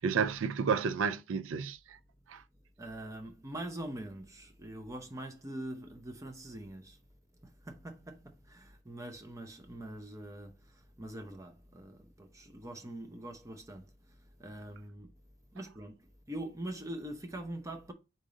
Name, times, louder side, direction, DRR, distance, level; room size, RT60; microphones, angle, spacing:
voice 1, 0.0-2.0 2.3-2.4, right 6 dB, 90° right, 0.4 m, -31 dB
voice 2, 2.8-7.0 7.4-10.6 11.0-13.8 14.4-15.1 15.5-17.9, right 1 dB, 15° right, 0.7 m, -43 dB
4.0 x 3.6 x 3.7 m
head